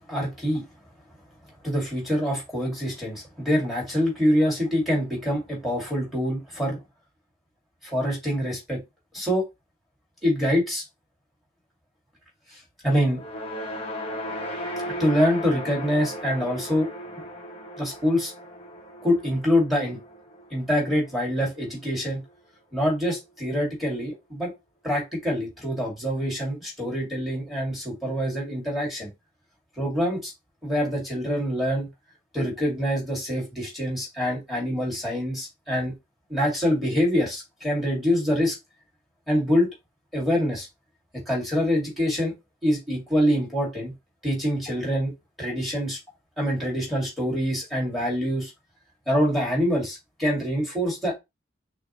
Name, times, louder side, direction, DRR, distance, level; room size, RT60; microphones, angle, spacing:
voice 1, 0.1-0.6 1.6-6.8 7.8-8.8 9.1-9.4 10.2-10.8 12.5-12.6 12.8-13.2 15.0-16.9 17.8-18.3 19.0-20.0 20.5-22.2 22.7-24.5 24.8-29.1 29.8-30.3 30.6-31.9 32.3-35.9 36.3-38.6 39.3-39.7 40.1-40.7 41.3-42.3 42.6-43.9 44.2-45.1 45.4-46.0 46.4-48.5 49.1-51.1, equal, ahead, 1.9 m, -25 dB
sound 1, 13.1-21.5, equal, 30° left, 1.0 m, -36 dB
6.1 x 2.3 x 2.9 m
head